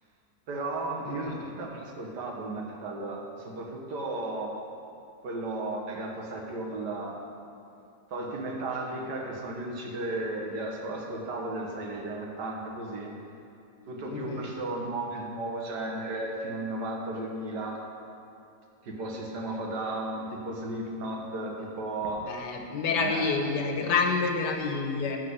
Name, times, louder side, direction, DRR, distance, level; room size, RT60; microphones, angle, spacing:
voice 1, 0.5-4.5 5.2-7.2 8.1-13.1 13.9-17.8 18.8-22.3 23.0-23.3, right 2 dB, 80° right, 0 dB, 1.9 m, -34 dB
voice 2, 1.1-1.5 14.1-14.5 22.3-25.2, left 4 dB, 85° left, 3 dB, 1.7 m, -28 dB
13.5 x 4.8 x 7.9 m, 2.6 s
omnidirectional pair, 1.8 m